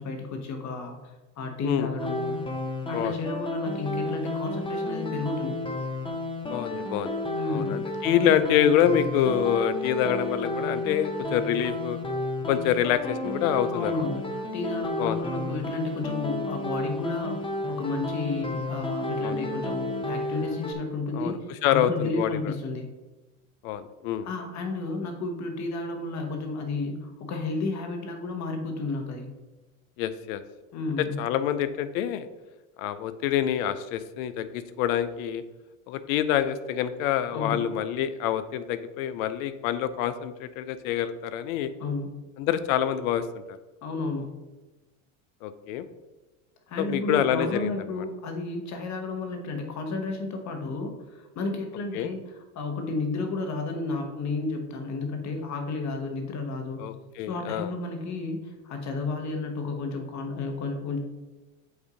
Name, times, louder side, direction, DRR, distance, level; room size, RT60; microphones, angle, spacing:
voice 1, 0.0-2.4 2.9-5.6 7.3-7.8 8.3-8.4 13.7-22.9 24.2-29.3 30.7-31.2 37.3-37.7 41.8-42.2 43.8-44.3 46.7-56.8 57.3-61.0, left 3 dB, 40° left, 5 dB, 1.3 m, -32 dB
sound 1, 2.0-20.7, left 2 dB, 10° left, 0.7 m, -32 dB
voice 2, 6.5-7.1 7.5-12.0 12.5-14.0 15.0-15.2 19.2-19.4 21.1-21.4 21.6-22.5 23.6-24.3 30.0-30.4 31.2-32.3 32.8-35.4 35.9-41.7 42.4-43.6 45.4-45.9 46.8-47.7 51.9-52.1 56.8-57.7, left 10 dB, 75° left, 13 dB, 0.6 m, -26 dB
8.0 x 2.7 x 4.9 m, 1.1 s
supercardioid pair, 105°, 42 cm